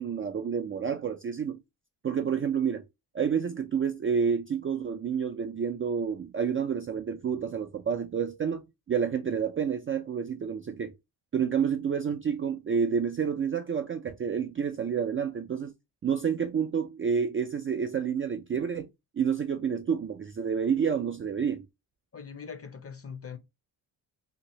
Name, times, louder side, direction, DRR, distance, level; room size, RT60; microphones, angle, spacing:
voice 1, 0.0-1.6 2.0-2.8 3.1-8.6 8.9-10.9 11.3-15.7 16.0-18.9 19.2-21.6, right 7 dB, 30° right, 0.3 m, -29 dB
voice 2, 22.1-23.4, left 6 dB, 30° left, 0.6 m, -41 dB
2.9 x 2.5 x 3.0 m
supercardioid pair, 50°, 49 cm